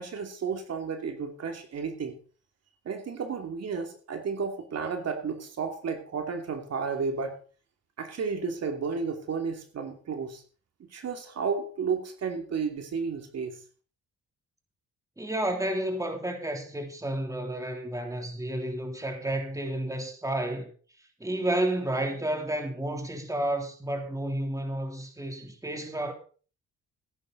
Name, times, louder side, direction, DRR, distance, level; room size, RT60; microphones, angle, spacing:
voice 1, 0.0-2.2 2.8-7.4 8.0-10.4 10.9-13.6, right 5 dB, 55° right, 2.9 m, -32 dB
voice 2, 15.2-20.7 21.2-26.1, right 1 dB, 10° right, 3.4 m, -31 dB
15.5 x 11.0 x 4.1 m
cardioid pair, 90°, 30 cm